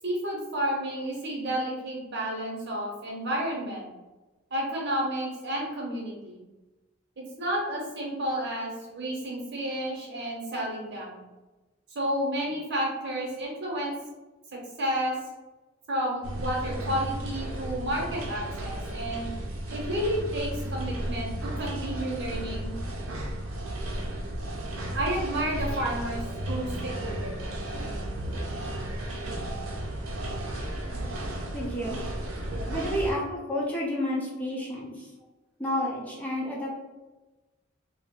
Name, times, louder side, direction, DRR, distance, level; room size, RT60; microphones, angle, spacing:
voice 1, 0.0-3.9 4.5-6.4 7.2-11.2 11.9-13.9 14.5-15.1 15.9-19.3 19.7-22.7 24.9-27.3 32.5-32.6, right 1 dB, 60° right, -2 dB, 0.9 m, -31 dB
sound 1, 16.2-33.1, right 1 dB, 90° right, 0.6 m, -34 dB
voice 2, 31.5-32.0 32.7-35.1 35.6-36.8, equal, 10° left, -5 dB, 0.6 m, -30 dB
2.6 x 2.1 x 3.7 m, 1.1 s
head